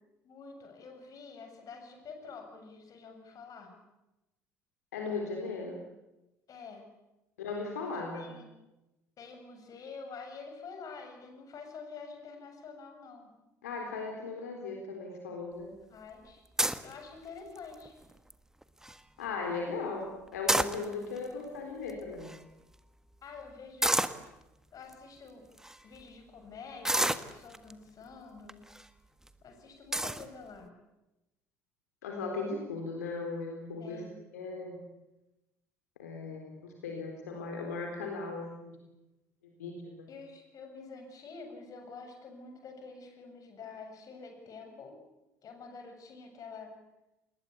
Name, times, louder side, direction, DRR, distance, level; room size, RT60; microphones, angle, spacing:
voice 1, 0.2-3.8 6.5-6.9 8.1-8.5 9.2-13.3 15.9-16.4 16.8-17.9 23.2-24.1 24.7-25.4 25.8-28.7 29.4-30.7 33.8-34.1 40.1-45.0 45.4-46.7, left 4 dB, 40° left, 5 dB, 7.2 m, -47 dB
voice 2, 4.9-5.8 7.4-8.3 13.6-15.7 19.2-22.3 32.0-34.0 34.3-34.8 36.0-38.7 39.6-40.1, left 4 dB, 75° left, 2 dB, 4.0 m, -37 dB
sound 1, 16.6-16.9 17.5-17.9 18.3-18.4 18.6-19.0 20.3-21.2 21.9-22.0 22.2-22.4 23.8-24.2 24.9-25.0 25.6-25.8 26.8-27.7 28.5-28.8 29.3-29.4 29.9-30.2, right 1 dB, 5° right, 1.6 m, -29 dB
28.5 x 20.5 x 8.4 m, 0.96 s
figure-of-eight pair, 60°, 9 cm